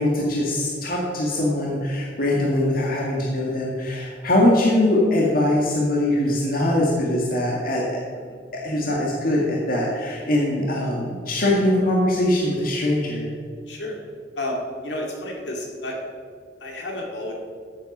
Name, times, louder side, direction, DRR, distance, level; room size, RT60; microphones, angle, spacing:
voice 1, 0.0-8.0 8.5-13.3, left 1 dB, 55° left, -3 dB, 1.9 m, -22 dB
voice 2, 13.7-14.0 14.4-16.0 16.6-17.3, left 1 dB, 75° left, 0 dB, 2.4 m, -31 dB
14.5 x 7.8 x 5.4 m, 2.1 s
head